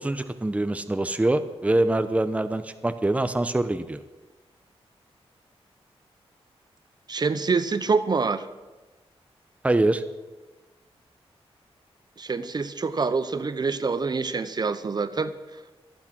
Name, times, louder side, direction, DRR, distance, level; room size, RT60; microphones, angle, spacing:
voice 1, 0.0-4.0 9.6-10.0, right 2 dB, 15° right, 10 dB, 0.8 m, -24 dB
voice 2, 7.1-8.4 12.2-15.3, right 4 dB, 40° right, 12 dB, 0.8 m, -26 dB
25.0 x 8.6 x 6.0 m, 1.2 s
wide cardioid pair, 100°, 11 cm